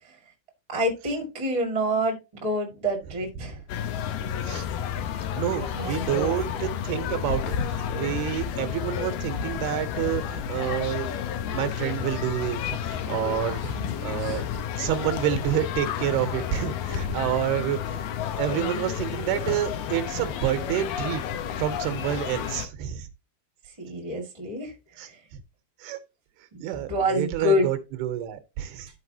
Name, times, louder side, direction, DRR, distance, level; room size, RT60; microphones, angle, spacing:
voice 1, 0.7-3.5 5.5-6.3 13.6-13.9 14.2-14.4 23.8-24.7 26.7-27.7, equal, 25° right, 0.8 m, -27 dB
sound 1, 3.7-22.7, left 8 dB, 75° left, 2.2 m, -31 dB
voice 2, 5.3-11.2 11.5-13.6 14.0-14.4 14.8-18.1 18.4-21.2 21.6-23.1 25.0-25.1 25.8-26.0 26.6-28.9, right 12 dB, 85° right, 3.0 m, -28 dB
13.5 x 4.7 x 2.8 m
omnidirectional pair, 4.5 m